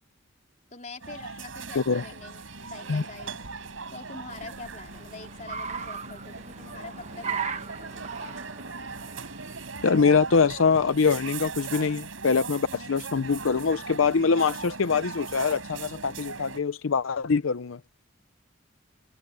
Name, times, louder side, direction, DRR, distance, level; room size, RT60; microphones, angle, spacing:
voice 1, 0.7-2.4 2.7-3.4 3.9-8.1, left 3 dB, 35° left, 3.7 m, -44 dB
sound 1, 1.0-16.6, right 4 dB, 80° right, 4.8 m, -39 dB
Car, 2.2-12.2, right 6 dB, 35° right, 1.3 m, -40 dB
voice 2, 9.8-17.8, left 5 dB, 80° left, 0.6 m, -24 dB
open air
head